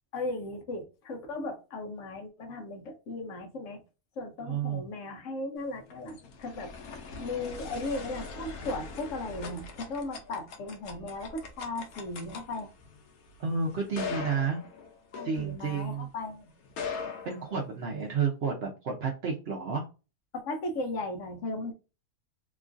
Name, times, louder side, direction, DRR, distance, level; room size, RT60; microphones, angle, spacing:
voice 1, 0.1-3.8 4.2-6.7 7.2-12.7 15.1-16.5 20.3-21.7, left 2 dB, 65° left, 1.0 m, -36 dB
voice 2, 4.4-4.9 13.4-14.6 15.2-16.1 17.2-19.8, right 5 dB, 60° right, 0.7 m, -31 dB
sound 1, 5.6-16.0 16.6-18.1, left 5 dB, 90° left, 1.1 m, -41 dB
2.9 x 2.4 x 2.4 m
omnidirectional pair, 1.5 m